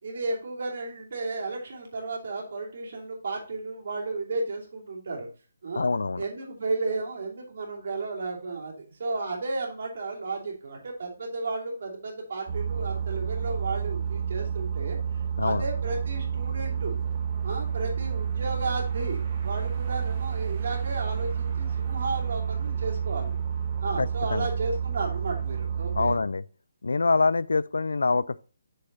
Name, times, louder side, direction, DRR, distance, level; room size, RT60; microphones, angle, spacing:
voice 1, 0.0-5.3 5.6-5.9 6.2-17.0 17.4-23.4 23.8-26.1, right 3 dB, 55° right, 2.7 m, -33 dB
voice 2, 5.8-6.2 15.4-15.6 24.0-24.5 25.9-26.4 26.8-28.4, left 3 dB, 90° left, 0.3 m, -25 dB
sound 1, 12.5-26.2, right 7 dB, 35° right, 1.4 m, -30 dB
6.6 x 5.6 x 3.9 m
hypercardioid pair, 165°, 0 cm